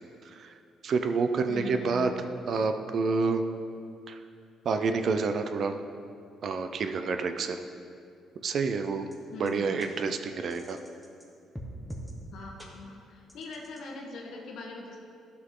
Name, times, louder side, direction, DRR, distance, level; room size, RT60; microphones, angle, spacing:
voice 1, 0.8-2.1 2.5-3.4 4.1-4.2 4.6-5.7 6.4-7.6 8.4-9.1 9.4-10.8, right 4 dB, 50° right, 7 dB, 0.5 m, -28 dB
voice 2, 1.5-2.3 9.3-9.9 12.3-15.0, left 3 dB, 70° left, 0 dB, 1.2 m, -41 dB
sound 1, 9.1-9.2 9.5-9.6 9.8-9.9 10.5-11.3 11.6-12.1 12.6-12.7 13.3-13.8, equal, ahead, 1.1 m, -42 dB
13.0 x 6.0 x 3.8 m, 2.4 s
cardioid pair, 130°, 0 cm